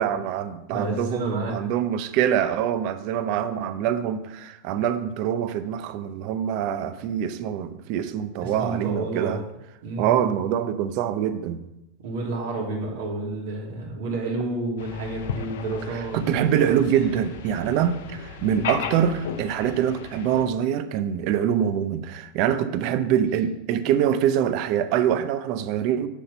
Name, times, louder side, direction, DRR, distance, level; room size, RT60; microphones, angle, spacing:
voice 1, 0.0-9.4 10.0-11.6 15.9-26.1, right 9 dB, 55° right, 11 dB, 0.6 m, -24 dB
voice 2, 0.7-1.6 8.4-9.4 9.8-10.2 12.0-16.2 17.0-17.1 18.4-18.7, right 2 dB, 80° right, -2 dB, 2.6 m, -30 dB
sound 1, 14.8-20.4, left 7 dB, 80° left, 0.8 m, -36 dB
7.1 x 4.4 x 6.8 m, 0.91 s
supercardioid pair, 140°, 0 cm